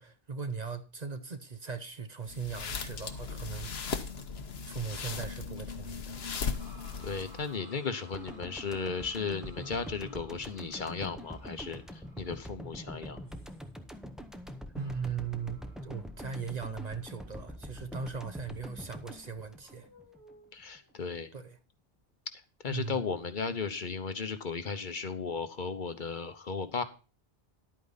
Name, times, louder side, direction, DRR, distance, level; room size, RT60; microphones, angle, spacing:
voice 1, 0.0-4.0 4.7-6.2 14.7-19.9 21.3-21.6 22.7-23.0, right 6 dB, 45° right, 0.9 m, -39 dB
sound 1, 2.3-7.5, left 5 dB, 85° left, 1.3 m, -37 dB
sound 2, 6.6-18.1 18.5-18.6 19.1-21.0, right 1 dB, 75° right, 3.2 m, -58 dB
voice 2, 7.0-13.2 20.5-21.3 22.6-26.8, left 5 dB, 55° left, 1.1 m, -35 dB
sound 3, 8.1-20.3 20.6-20.8, equal, ahead, 0.8 m, -45 dB
11.0 x 8.6 x 4.0 m
omnidirectional pair, 1.0 m